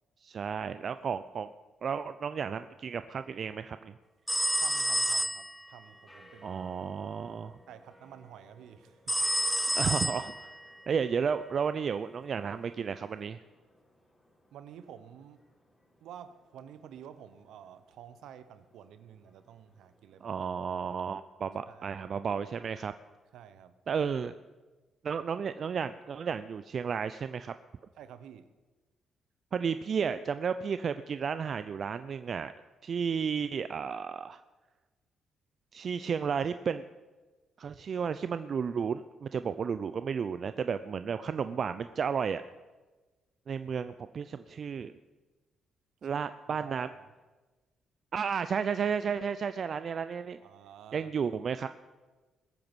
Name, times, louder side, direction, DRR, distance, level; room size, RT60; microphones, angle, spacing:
voice 1, 0.2-1.5 1.8-3.9 6.4-7.6 9.8-10.5 10.9-13.4 20.2-22.9 23.9-24.3 25.0-27.5 29.5-32.5 32.8-34.4 35.7-36.8 37.6-42.4 43.5-44.9 46.0-46.9 48.1-50.4 50.9-51.7, right 6 dB, 55° right, 12 dB, 0.5 m, -33 dB
sound 1, 4.3-5.6 9.1-10.7, equal, ahead, 0.5 m, -29 dB
voice 2, 4.6-6.6 7.7-9.1 9.5-9.7 14.5-15.4 16.0-20.4 21.7-22.0 23.3-23.7 28.0-28.5 46.0-46.2 46.5-47.1 50.4-51.1, right 9 dB, 75° right, 12 dB, 0.9 m, -50 dB
sound 2, 5.8-20.5, left 1 dB, 20° left, 4.5 m, -61 dB
20.5 x 8.7 x 6.2 m, 1.3 s
hypercardioid pair, 50°, 0 cm